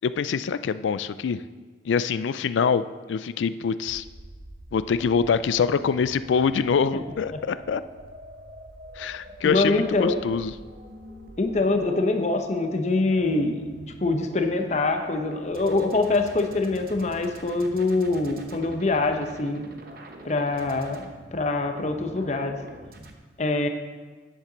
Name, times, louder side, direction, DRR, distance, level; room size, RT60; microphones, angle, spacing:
voice 1, 0.0-1.4 1.9-2.8 3.1-4.0 4.7-7.8 9.0-10.5, left 6 dB, 90° left, 14 dB, 0.3 m, -24 dB
sound 1, 3.9-23.1, right 1 dB, 55° right, 0.9 m, -44 dB
voice 2, 9.4-10.2 11.4-13.6 14.0-19.7 20.2-22.6 23.4-23.7, left 3 dB, 40° left, 5 dB, 0.7 m, -24 dB
10.0 x 7.4 x 3.9 m, 1.4 s
head